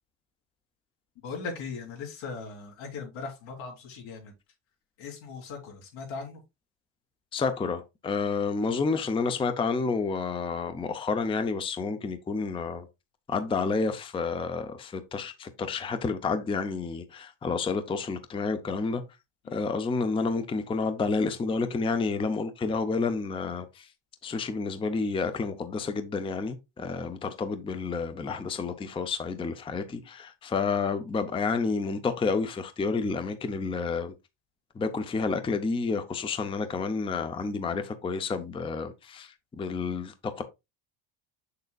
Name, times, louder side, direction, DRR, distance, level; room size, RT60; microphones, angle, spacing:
voice 1, 1.2-4.3 5.0-6.4 19.4-19.7, left 4 dB, 85° left, 3.2 m, -39 dB
voice 2, 7.3-12.9 13.3-19.0 19.5-23.9 24.2-34.1 34.8-40.4, left 4 dB, 10° left, 0.5 m, -30 dB
6.8 x 6.6 x 2.3 m
cardioid pair, 150°, 45 cm